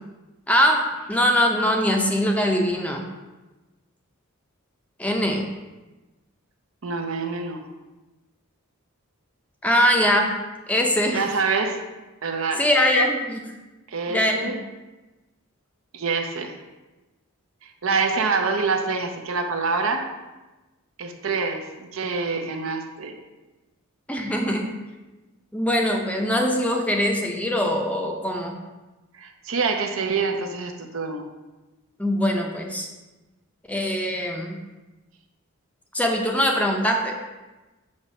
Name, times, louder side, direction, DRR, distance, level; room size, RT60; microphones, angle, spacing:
voice 1, 0.5-3.0 5.0-5.5 9.6-10.3 10.7-11.2 12.6-13.5 14.1-14.5 24.1-24.7 25.5-28.6 32.0-32.9 33.7-34.6 35.9-37.1, equal, 5° left, 2 dB, 0.5 m, -22 dB
voice 2, 6.8-7.7 11.1-11.9 12.2-12.6 13.9-14.6 15.9-16.6 17.8-20.1 21.0-23.2 29.1-31.3, right 4 dB, 70° right, 4 dB, 0.7 m, -26 dB
6.2 x 3.0 x 5.5 m, 1.1 s
head